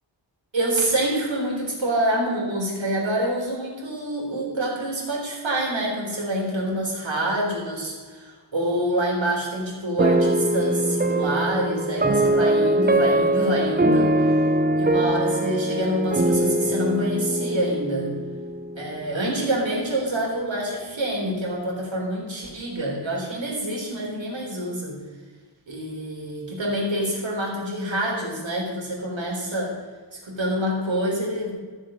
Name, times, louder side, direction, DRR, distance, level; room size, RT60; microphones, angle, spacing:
voice 1, 0.5-14.3 14.8-18.1 18.7-25.0 25.7-29.7 30.2-31.5, right 1 dB, 75° right, -2 dB, 3.9 m, -26 dB
sound 1, 10.0-19.2, right 1 dB, 20° right, 0.8 m, -22 dB
15.0 x 7.1 x 6.4 m, 1.5 s
wide cardioid pair, 75°, 46 cm